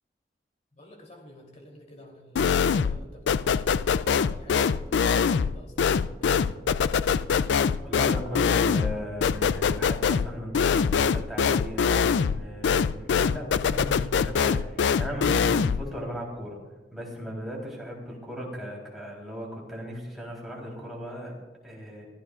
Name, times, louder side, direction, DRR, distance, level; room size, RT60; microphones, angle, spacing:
voice 1, 0.7-4.0 4.3-6.6, left 1 dB, 40° left, 0 dB, 3.3 m, -50 dB
sound 1, 2.4-3.0 3.3-15.9, left 6 dB, 80° left, 0.4 m, -24 dB
voice 2, 7.8-14.6 15.0-16.6 16.9-21.3 21.6-22.1, equal, ahead, -3 dB, 3.6 m, -37 dB
23.5 x 14.5 x 2.5 m, 1.2 s
head